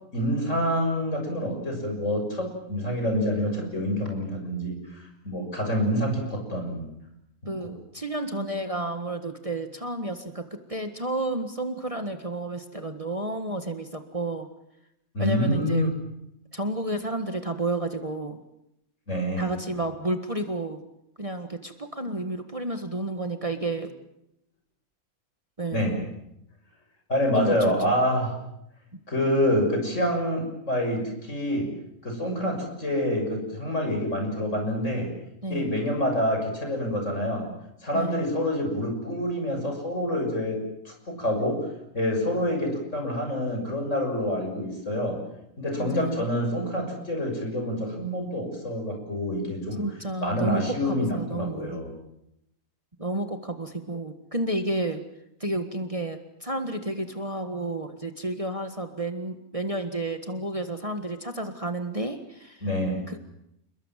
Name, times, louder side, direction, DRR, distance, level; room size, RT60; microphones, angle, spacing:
voice 1, 0.1-6.9 7.4-7.7 15.1-15.9 19.1-19.5 25.7-26.0 27.1-28.3 29.1-31.7 32.0-35.1 35.5-37.5 37.8-41.7 41.9-45.2 45.6-49.9 50.2-51.9 62.6-63.0, equal, 60° left, 3 dB, 7.0 m, -27 dB
voice 2, 7.5-14.5 15.2-15.9 16.5-18.4 19.4-20.8 21.2-23.9 25.6-25.8 27.3-27.9 28.9-29.0 35.4-35.7 37.9-38.2 45.7-46.2 49.8-51.8 53.0-55.0 55.4-62.6 63.1-63.2, right 2 dB, 25° right, 6 dB, 1.7 m, -31 dB
29.5 x 21.5 x 7.5 m, 0.79 s
omnidirectional pair, 1.5 m